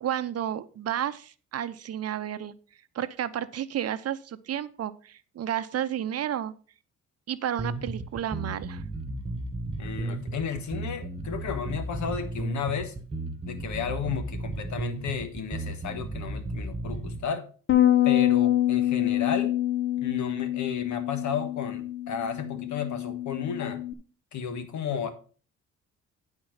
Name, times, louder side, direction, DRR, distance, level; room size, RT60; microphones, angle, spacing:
voice 1, 0.0-2.5 2.9-6.5 7.3-8.8, right 10 dB, 55° right, 13 dB, 0.7 m, -31 dB
sound 1, 7.6-17.2, right 2 dB, 20° right, 1.8 m, -34 dB
voice 2, 9.8-12.9 13.5-17.5 18.0-19.5 20.0-23.8 24.3-25.1, left 7 dB, 70° left, 9 dB, 1.5 m, -33 dB
Bass guitar, 17.7-23.9, left 12 dB, 40° left, 0.9 m, -26 dB
10.0 x 4.4 x 5.7 m, 0.38 s
cardioid pair, 90°, 30 cm